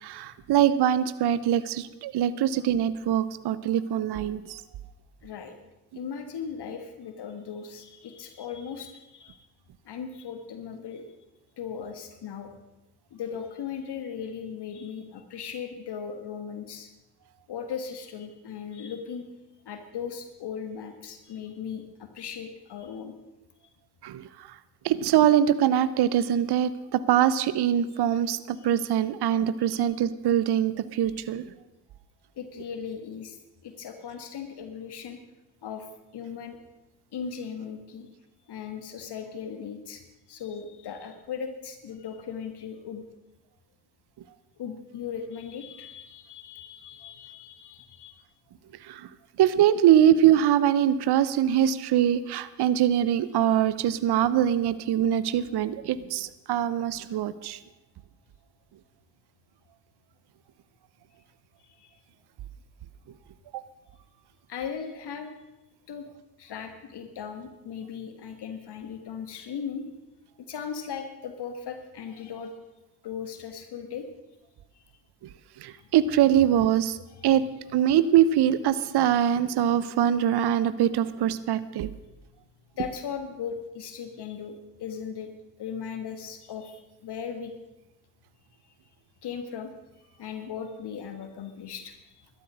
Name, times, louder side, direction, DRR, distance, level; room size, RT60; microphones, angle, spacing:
voice 1, 0.0-4.6 24.0-24.5 24.8-31.4 48.8-49.1 49.4-57.6 63.5-63.6 75.6-77.0 77.2-77.4 77.7-81.9, right 10 dB, 55° right, 16 dB, 0.9 m, -23 dB
voice 2, 5.2-5.6 5.9-9.4 9.8-11.1 11.6-12.5 13.1-16.9 17.5-19.2 19.6-23.1 27.9-28.0 28.5-28.6 29.6-29.9 31.0-31.1 32.3-33.4 33.6-35.2 35.6-35.9 36.1-36.6 37.1-38.1 38.4-43.0 44.6-48.2 53.4-53.6 61.6-62.0 64.5-65.3 65.9-66.1 66.4-69.8 70.4-72.6 73.0-74.1 74.7-74.9 75.7-75.8 77.1-77.4 82.8-85.3 85.6-87.5 88.6-88.7 89.2-89.7 90.2-92.3, left 7 dB, 55° left, 7 dB, 1.6 m, -38 dB
12.5 x 12.5 x 6.3 m, 1.0 s
hypercardioid pair, 50°, 48 cm